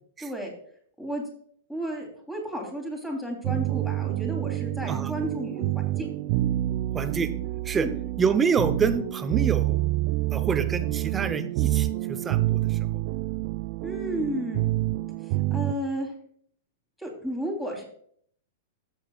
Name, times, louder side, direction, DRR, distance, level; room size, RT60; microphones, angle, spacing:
voice 1, 0.2-0.5 1.0-1.2 1.7-6.1 7.7-7.9 13.8-14.6 15.2-16.1 17.0-17.8, equal, 5° left, 0 dB, 3.2 m, -33 dB
sound 1, 3.4-15.7, right 16 dB, 45° right, 0.4 m, -27 dB
voice 2, 6.9-7.3 7.6-7.9 8.2-9.8 10.3-13.0, right 5 dB, 20° right, 10 dB, 0.7 m, -27 dB
14.5 x 7.4 x 2.4 m, 0.62 s
figure-of-eight pair, 105°, 0 cm